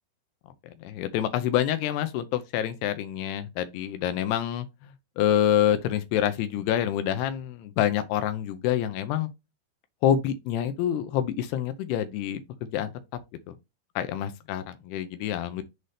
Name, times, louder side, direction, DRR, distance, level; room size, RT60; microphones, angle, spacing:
voice 1, 0.8-9.3 10.0-12.9 13.5-13.6 14.0-15.6, left 10 dB, 80° left, 2.4 m, -27 dB
7.7 x 4.1 x 3.3 m
omnidirectional pair, 5.3 m